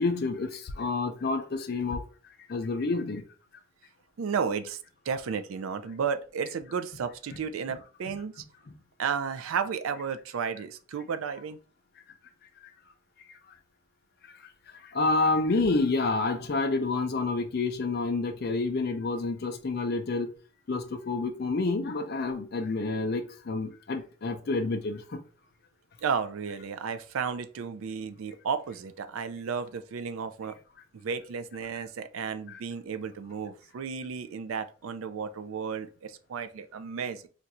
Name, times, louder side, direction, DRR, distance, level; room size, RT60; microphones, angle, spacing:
voice 1, 0.0-2.0 2.5-3.2 14.9-20.3 20.7-25.0 32.5-32.6, left 3 dB, 45° left, 0.4 m, -28 dB
voice 2, 4.2-4.8 5.1-8.4 9.0-11.6 26.0-30.6 30.9-37.3, right 6 dB, 75° right, 0.4 m, -33 dB
2.5 x 2.3 x 4.1 m
head